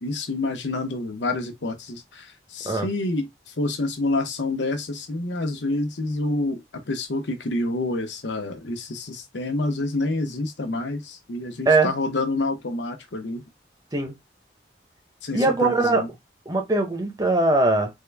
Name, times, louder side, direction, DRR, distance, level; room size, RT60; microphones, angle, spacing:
voice 1, 0.0-13.4 15.2-16.1, left 2 dB, 90° left, 0.8 m, -28 dB
voice 2, 15.3-16.0 16.5-17.9, right 2 dB, 20° right, 0.8 m, -21 dB
3.6 x 2.1 x 3.3 m
head